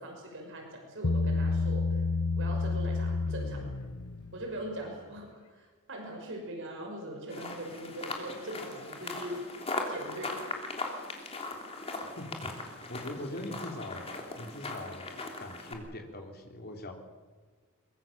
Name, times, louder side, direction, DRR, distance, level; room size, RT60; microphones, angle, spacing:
voice 1, 0.0-2.0 2.4-3.7 4.3-9.4 9.9-10.4, right 1 dB, 60° right, 2 dB, 5.7 m, -41 dB
Bass guitar, 1.0-4.4, left 3 dB, 75° left, 1.0 m, -30 dB
sound 1, 7.3-15.7, left 2 dB, 25° left, 3.3 m, -39 dB
voice 2, 12.0-15.1 15.4-16.9, left 1 dB, 45° left, 3 dB, 3.8 m, -42 dB
23.0 x 22.5 x 7.6 m, 1.5 s
head